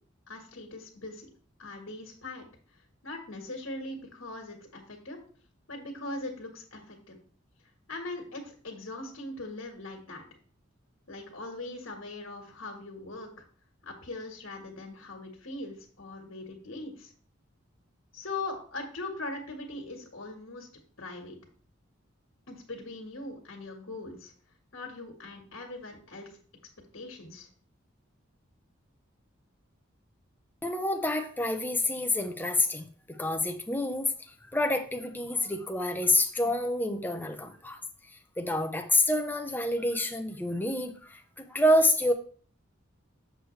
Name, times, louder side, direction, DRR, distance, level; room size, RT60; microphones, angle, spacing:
voice 1, 0.3-1.3 1.6-2.5 3.0-5.2 5.7-7.2 7.9-10.2 11.1-13.4 13.8-17.1 18.1-20.7 21.0-21.4 22.5-24.3 24.7-26.3 26.9-27.5, left 2 dB, 75° left, 0 dB, 1.7 m, -40 dB
voice 2, 30.6-34.1 34.5-37.8 38.4-42.1, left 1 dB, 10° left, 5 dB, 0.8 m, -28 dB
7.8 x 6.5 x 3.3 m, 0.43 s
head